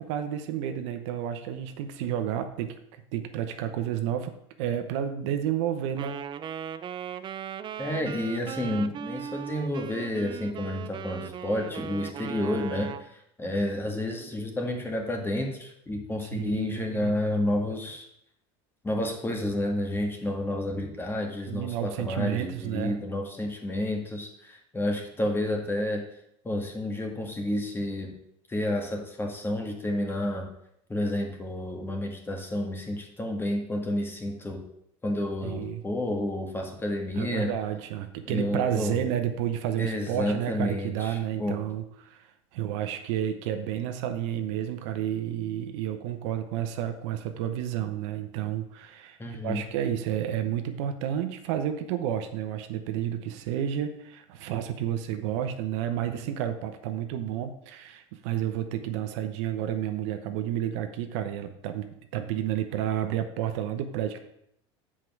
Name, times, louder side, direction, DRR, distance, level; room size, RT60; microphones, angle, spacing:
voice 1, 0.0-2.7 3.1-6.2 16.2-17.1 21.5-23.0 35.4-35.8 37.2-42.2 42.5-64.2, right 10 dB, 80° right, 7 dB, 1.0 m, -31 dB
Wind instrument woodwind instrument, 6.0-13.1, right 8 dB, 30° right, 0.5 m, -38 dB
voice 2, 7.8-18.1 18.8-26.0 26.4-28.1 28.5-30.5 30.9-34.6 35.0-37.5 38.2-39.0 39.8-41.6 49.2-49.6, left 1 dB, 15° left, 2 dB, 1.7 m, -30 dB
7.6 x 4.9 x 6.0 m, 0.75 s
supercardioid pair, 115°, 15 cm